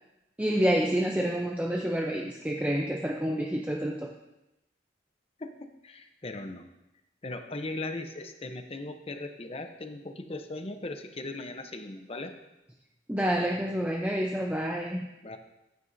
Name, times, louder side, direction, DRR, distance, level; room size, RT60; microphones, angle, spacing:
voice 1, 0.4-4.1 13.1-15.1, equal, 10° right, 0 dB, 0.6 m, -28 dB
voice 2, 5.4-6.6 7.2-12.3 15.2-15.4, left 2 dB, 35° left, 7 dB, 0.7 m, -38 dB
15.0 x 9.2 x 2.7 m, 0.95 s
head